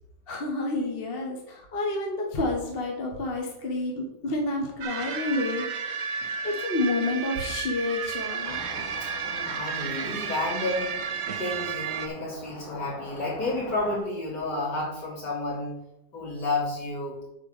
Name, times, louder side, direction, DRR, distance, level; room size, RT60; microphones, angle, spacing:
voice 1, 0.3-6.0 6.4-8.6, left 2 dB, 30° left, 0 dB, 1.3 m, -29 dB
sound 1, 4.8-12.1, right 6 dB, 70° right, 0.6 m, -32 dB
sound 2, 8.4-14.0, left 3 dB, 85° left, 2.2 m, -43 dB
voice 2, 9.0-15.7 16.1-17.2, left 2 dB, 60° left, -6 dB, 4.0 m, -31 dB
8.2 x 4.7 x 6.7 m, 0.86 s
omnidirectional pair, 2.2 m